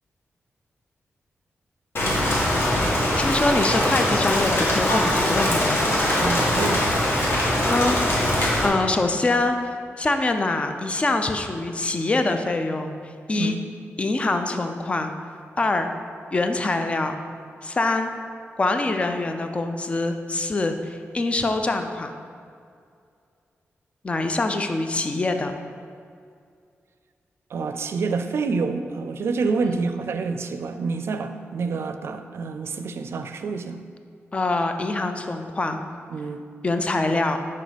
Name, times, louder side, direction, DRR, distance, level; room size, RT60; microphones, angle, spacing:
Rain, 2.0-8.7, left 1 dB, 55° left, 1.6 m, -22 dB
voice 1, 3.2-5.8 7.7-8.0 8.6-13.6 14.0-15.1 15.6-15.9 16.3-17.2 17.6-18.1 18.6-22.1 24.0-25.5 29.6-29.9 34.3-35.8 36.6-37.4, left 2 dB, 25° left, 6 dB, 0.5 m, -24 dB
voice 2, 6.2-6.9 13.4-13.6 27.5-33.8 36.1-36.4, right 4 dB, 65° right, 8 dB, 0.4 m, -27 dB
6.3 x 5.4 x 5.1 m, 2.3 s
wide cardioid pair, 145°, 5 cm